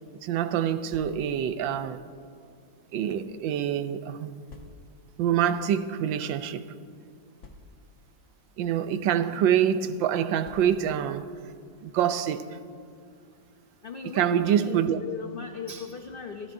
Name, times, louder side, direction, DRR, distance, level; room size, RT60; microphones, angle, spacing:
voice 1, 0.2-2.0 2.9-4.4 5.2-6.6 8.6-11.2 11.8-12.6 14.1-15.0, right 9 dB, 85° right, 1.4 m, -26 dB
sound 1, 0.9-1.5 2.3-3.4 4.5-5.1 5.9-6.1 6.4-6.5 7.4-8.0 8.9-9.1 10.4-11.0, left 3 dB, 45° left, 1.3 m, -50 dB
voice 2, 13.8-16.5, left 4 dB, 90° left, 0.4 m, -37 dB
29.5 x 14.5 x 2.7 m
omnidirectional pair, 2.0 m